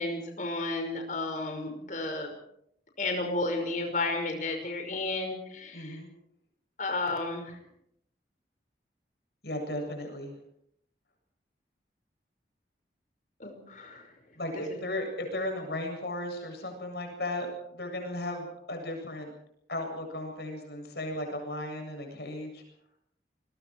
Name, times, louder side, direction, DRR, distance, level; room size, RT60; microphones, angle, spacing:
voice 1, 0.0-2.3 3.0-6.0 6.8-7.6 13.4-14.1, left 2 dB, 45° left, 4 dB, 5.6 m, -32 dB
voice 2, 5.7-6.1 9.4-10.3 14.3-19.3 19.7-22.6, left 1 dB, 65° left, 4 dB, 7.9 m, -35 dB
29.0 x 22.5 x 4.8 m, 0.73 s
head